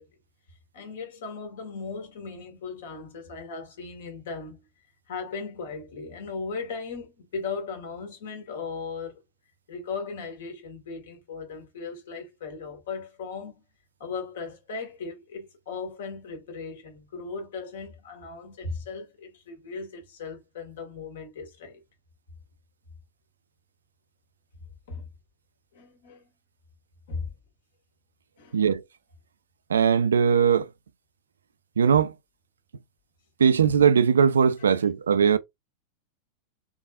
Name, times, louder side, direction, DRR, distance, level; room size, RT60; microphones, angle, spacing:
voice 1, 0.7-4.6 5.1-9.1 9.7-13.5 14.0-21.8 24.9-25.1 25.7-26.2 27.1-27.3 28.4-28.6, left 4 dB, 60° left, 1.6 m, -37 dB
voice 2, 29.7-30.7 31.8-32.1 33.4-35.4, right 7 dB, 70° right, 0.4 m, -20 dB
3.7 x 3.6 x 2.3 m
figure-of-eight pair, 90°, 0 cm